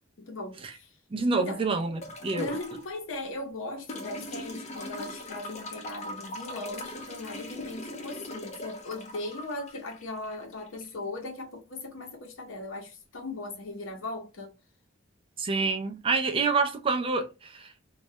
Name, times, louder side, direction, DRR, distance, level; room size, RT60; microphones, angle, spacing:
voice 1, 0.2-1.0 1.4-1.6 2.3-14.5, left 2 dB, 75° left, 0.8 m, -38 dB
voice 2, 1.1-2.5 15.4-17.7, right 4 dB, 25° right, 0.3 m, -27 dB
sound 1, 2.0-2.9 3.9-10.9 12.3-12.4, left 2 dB, 35° left, 0.5 m, -40 dB
2.3 x 2.0 x 2.7 m
head